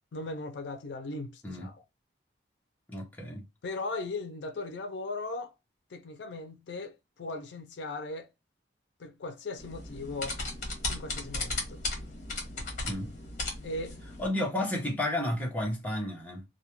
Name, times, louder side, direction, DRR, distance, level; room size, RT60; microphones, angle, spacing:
voice 1, 0.1-1.7 3.6-5.5 5.9-8.3 9.0-10.4 10.9-11.8 13.6-14.0, left 2 dB, 70° left, 0.4 m, -38 dB
voice 2, 2.9-3.5 12.9-13.1 14.2-16.4, left 1 dB, 10° left, 0.6 m, -32 dB
sound 1, 9.6-14.3, left 2 dB, 40° left, 0.9 m, -36 dB
2.3 x 2.1 x 2.9 m
head